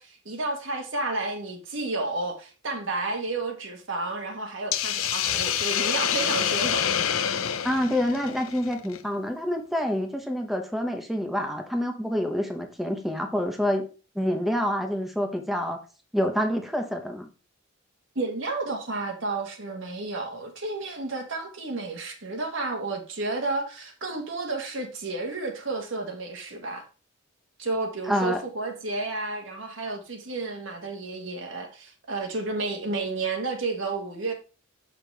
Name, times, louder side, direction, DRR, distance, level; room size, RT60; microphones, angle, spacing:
voice 1, 0.0-6.9 18.1-26.8 27.6-34.3, right 3 dB, 65° right, 1.6 m, -31 dB
Hiss, 4.7-9.0, left 9 dB, 90° left, 0.6 m, -27 dB
voice 2, 7.6-13.8 14.1-15.8 16.1-17.3 28.1-28.4, equal, ahead, 0.8 m, -27 dB
6.8 x 6.0 x 3.4 m
head